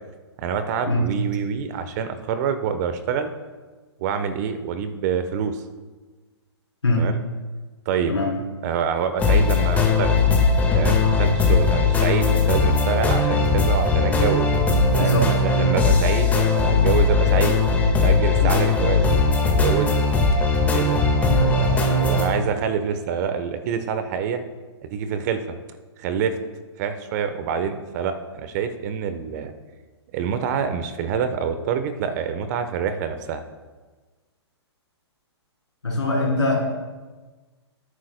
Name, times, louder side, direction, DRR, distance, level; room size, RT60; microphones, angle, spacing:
voice 1, 0.4-3.3 4.0-5.6 6.9-7.2 7.8-8.2 8.6-10.2 10.7-14.5 14.9-17.6 18.0-19.0 19.6-19.9 20.7-21.0 21.4-24.4 24.8-25.4 26.0-26.4 26.8-29.5 30.1-33.4, right 7 dB, 40° right, 10 dB, 1.0 m, -26 dB
sound 1, 9.2-22.3, left 3 dB, 10° left, 1.6 m, -19 dB
voice 2, 15.0-15.3 18.4-18.5 35.8-36.6, left 2 dB, 80° left, -3 dB, 3.9 m, -22 dB
19.5 x 9.8 x 2.2 m, 1.3 s
figure-of-eight pair, 120°, 14 cm